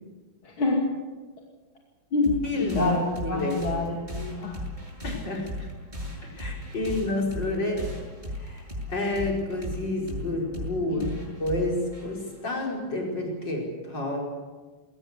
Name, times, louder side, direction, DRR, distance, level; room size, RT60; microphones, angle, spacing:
voice 1, 0.4-0.9 2.1-4.6 10.9-11.2, left 3 dB, 85° left, -1 dB, 3.3 m, -27 dB
sound 1, 2.2-13.3, left 1 dB, 20° right, 8.0 m, -37 dB
voice 2, 2.4-3.0 3.2-3.6 5.0-5.7 6.2-7.9 8.4-11.1 11.4-14.2, left 2 dB, 60° left, -1 dB, 5.7 m, -29 dB
20.5 x 19.0 x 8.3 m, 1.3 s
omnidirectional pair, 2.2 m